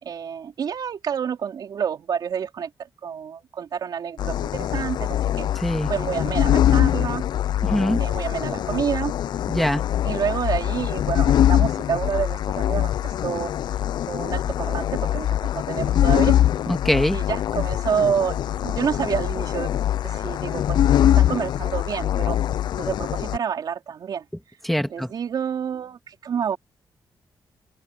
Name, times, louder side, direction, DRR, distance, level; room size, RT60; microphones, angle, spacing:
voice 1, 0.0-5.5 5.9-7.2 8.0-9.1 10.0-13.5 14.1-16.4 17.1-18.4 18.6-19.8 20.0-22.4 22.8-24.3 24.9-26.6, right 7 dB, 60° right, 3.8 m, -28 dB
sound 1, 4.2-23.4, left 11 dB, 70° left, 0.4 m, -23 dB
voice 2, 5.6-5.9 7.6-8.0 9.5-9.8 16.7-17.2 24.6-25.1, equal, ahead, 2.4 m, -23 dB
open air
cardioid pair, 125°, 8 cm